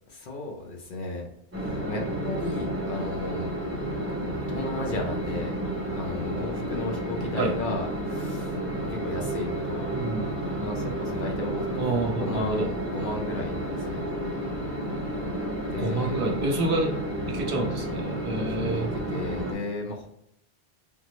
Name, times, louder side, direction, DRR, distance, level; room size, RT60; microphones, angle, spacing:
voice 1, 0.1-1.3 1.6-3.5 4.4-5.5 5.9-9.9 10.5-14.0 15.7-16.3 18.2-20.1, left 2 dB, 55° left, 0 dB, 0.7 m, -35 dB
sound 1, 1.5-19.5, right 1 dB, 15° right, 0.9 m, -31 dB
voice 2, 9.9-10.3 11.8-12.7 15.8-16.9 17.3-18.9, right 2 dB, 60° right, 1 dB, 0.8 m, -28 dB
3.5 x 2.0 x 2.9 m, 0.80 s
omnidirectional pair, 1.1 m